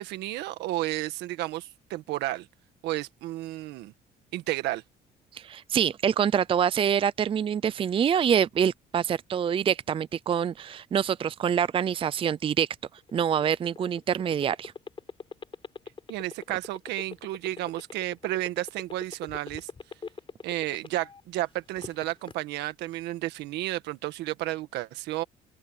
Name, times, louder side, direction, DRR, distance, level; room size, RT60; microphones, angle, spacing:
voice 1, 0.0-2.5 2.8-3.9 4.3-4.8 16.1-19.7 20.4-25.2, right 16 dB, 85° right, 1.7 m, -32 dB
voice 2, 5.3-12.7 13.1-14.7, right 8 dB, 30° right, 0.5 m, -25 dB
sound 1, 13.0-21.2 21.6-22.3, left 5 dB, 30° left, 5.0 m, -41 dB
open air
cardioid pair, 110°, 17 cm